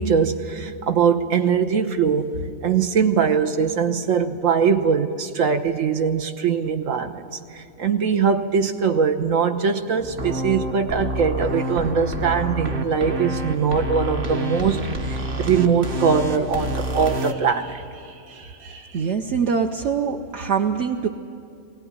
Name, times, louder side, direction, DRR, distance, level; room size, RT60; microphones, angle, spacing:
voice 1, 0.0-2.3 2.6-19.0, right 6 dB, 80° right, 7 dB, 1.5 m, -22 dB
sound 1, 10.0-17.3, equal, 45° right, 1.3 m, -28 dB
voice 2, 18.9-21.1, right 6 dB, 65° right, 3 dB, 1.1 m, -23 dB
21.0 x 17.5 x 9.6 m, 2.4 s
omnidirectional pair, 1.3 m